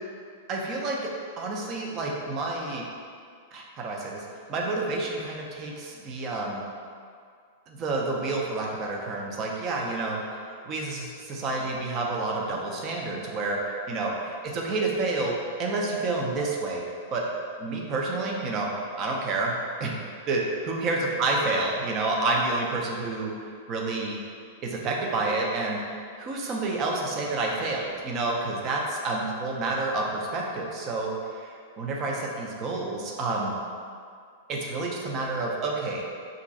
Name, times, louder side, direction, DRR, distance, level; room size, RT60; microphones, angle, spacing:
voice 1, 0.5-1.1 1.4-2.8 3.5-6.6 7.7-10.2 10.6-13.6 13.9-14.1 14.5-16.8 17.1-17.2 17.6-18.7 19.0-19.5 19.8-20.0 20.3-23.3 23.7-24.2 24.6-25.8 26.2-33.5 34.5-36.0, right 3 dB, 35° right, -1 dB, 0.5 m, -29 dB
2.5 x 2.2 x 4.0 m, 2.2 s
hypercardioid pair, 100°, 0 cm